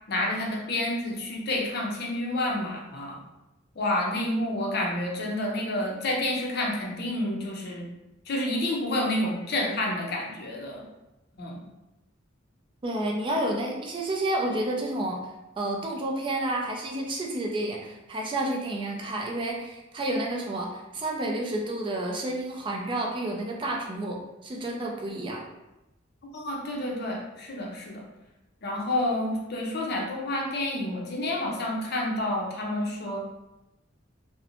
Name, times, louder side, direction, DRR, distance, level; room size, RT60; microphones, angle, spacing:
voice 1, 0.1-3.2 3.8-7.9 8.3-10.8 11.4-11.6 26.3-28.0 28.6-33.2, left 1 dB, 55° left, -1 dB, 0.5 m, -29 dB
voice 2, 12.8-15.3 15.6-25.4, right 1 dB, 25° right, 0 dB, 0.3 m, -30 dB
2.5 x 2.0 x 2.8 m, 0.96 s
head